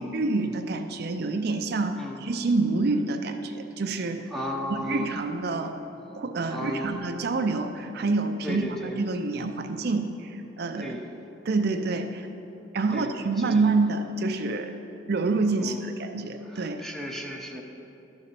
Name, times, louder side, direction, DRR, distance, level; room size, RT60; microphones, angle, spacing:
voice 1, 0.0-4.3 4.7-5.7 6.1-11.0 11.4-12.3 12.7-14.7 15.1-16.8, right 3 dB, 60° right, 5 dB, 0.5 m, -27 dB
voice 2, 4.3-5.1 6.5-7.0 8.4-9.0 10.8-11.1 12.9-13.1 13.4-13.6 15.6-15.8 16.4-17.6, equal, ahead, 1 dB, 0.8 m, -34 dB
12.0 x 4.1 x 6.7 m, 2.9 s
head